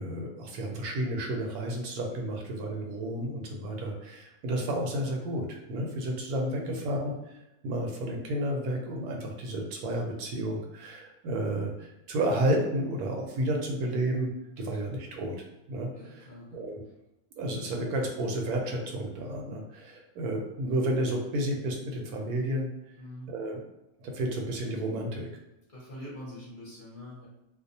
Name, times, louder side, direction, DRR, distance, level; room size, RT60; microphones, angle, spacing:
voice 1, 0.0-7.3 7.6-14.3 14.6-15.4 15.7-16.8 17.4-22.7 23.3-23.6 24.0-25.3, right 1 dB, 85° right, 1 dB, 1.1 m, -31 dB
voice 2, 14.6-15.2 15.9-16.6 23.0-23.3 25.7-27.3, equal, 45° left, -6 dB, 0.7 m, -45 dB
2.6 x 2.0 x 2.6 m, 0.91 s
omnidirectional pair, 1.6 m